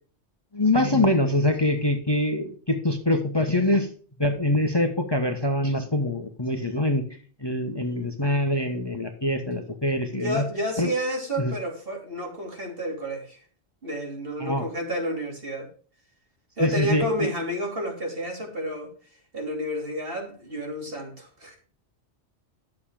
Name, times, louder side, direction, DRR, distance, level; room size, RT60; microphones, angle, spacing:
voice 1, 0.5-3.9 4.2-7.1 7.4-10.4 10.8-10.9 11.4-11.5 14.4-14.7 16.6-17.3, left 1 dB, 20° left, 5 dB, 1.3 m, -24 dB
voice 2, 10.1-13.4 13.8-15.7 16.6-18.9 19.3-21.6, equal, 55° right, 0 dB, 3.3 m, -30 dB
11.5 x 7.4 x 4.9 m, 0.42 s
omnidirectional pair, 1.2 m